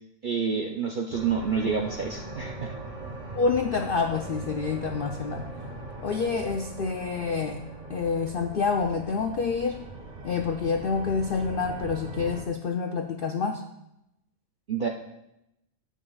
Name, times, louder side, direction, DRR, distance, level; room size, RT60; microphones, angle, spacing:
voice 1, 0.2-2.7 14.7-14.9, right 6 dB, 60° right, 1 dB, 0.5 m, -28 dB
sound 1, 1.1-12.4, right 2 dB, 35° right, 1.2 m, -40 dB
voice 2, 3.3-5.5 6.0-7.6 7.9-9.8 10.2-13.6, left 5 dB, 70° left, 4 dB, 0.5 m, -27 dB
11.0 x 8.3 x 2.3 m, 0.86 s
omnidirectional pair, 1.5 m